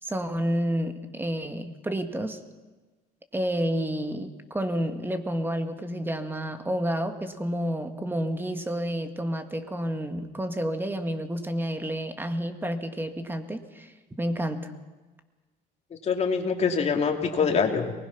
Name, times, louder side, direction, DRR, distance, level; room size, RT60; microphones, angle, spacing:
voice 1, 0.0-2.4 3.3-14.7, equal, 10° right, 8 dB, 1.8 m, -30 dB
voice 2, 15.9-17.9, left 5 dB, 40° left, 3 dB, 2.8 m, -25 dB
24.0 x 20.0 x 5.9 m, 1.3 s
cardioid pair, 110°, 17 cm